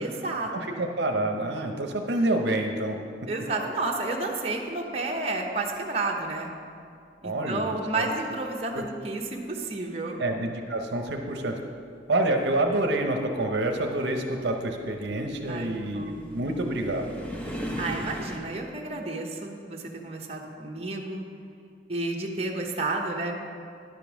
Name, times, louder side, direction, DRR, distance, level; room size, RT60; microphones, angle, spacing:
voice 1, 0.0-0.9 3.3-6.5 7.2-10.2 15.5-16.2 17.8-21.2 21.9-23.3, right 2 dB, 35° right, -1 dB, 0.8 m, -31 dB
voice 2, 0.5-3.0 7.2-8.1 8.7-8.8 10.2-11.6 12.1-17.1, right 1 dB, 70° right, 3 dB, 0.7 m, -27 dB
sound 1, 12.7-18.4, equal, 5° left, 0.7 m, -38 dB
10.5 x 5.3 x 6.1 m, 2.4 s
head